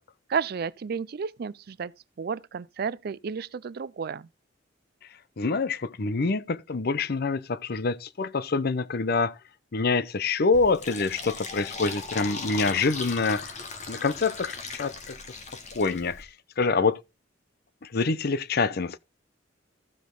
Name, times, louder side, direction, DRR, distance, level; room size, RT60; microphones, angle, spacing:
voice 1, 0.3-4.3, right 6 dB, 55° right, 0.4 m, -32 dB
voice 2, 5.4-9.4 9.7-13.5 13.9-15.2 15.7-16.3 16.6-17.0 17.8-19.0, left 4 dB, 55° left, 0.6 m, -26 dB
Fill (with liquid), 10.5-16.2, left 4 dB, 40° left, 1.8 m, -38 dB
14.5 x 5.1 x 3.8 m
head